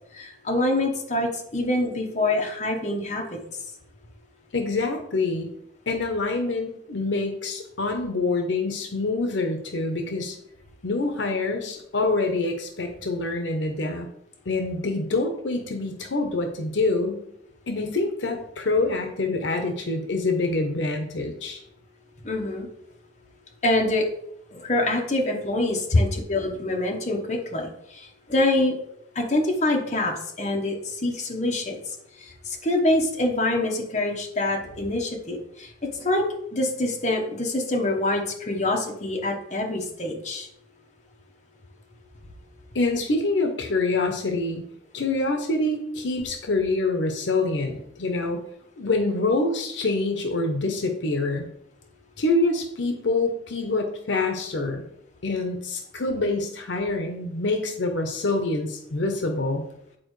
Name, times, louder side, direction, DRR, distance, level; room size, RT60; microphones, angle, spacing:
voice 1, 0.1-3.4 22.2-22.7 23.6-24.1 24.5-28.8 29.1-31.8 32.2-35.7 36.0-36.2 36.5-40.5, left 2 dB, 35° left, 0 dB, 1.1 m, -25 dB
voice 2, 4.5-5.5 5.9-10.4 10.8-14.1 14.5-17.2 17.7-21.6 42.7-44.6 44.9-48.4 48.8-51.5 52.2-54.9 55.2-59.6, left 2 dB, 75° left, 4 dB, 0.8 m, -26 dB
8.7 x 4.3 x 3.2 m, 0.75 s
head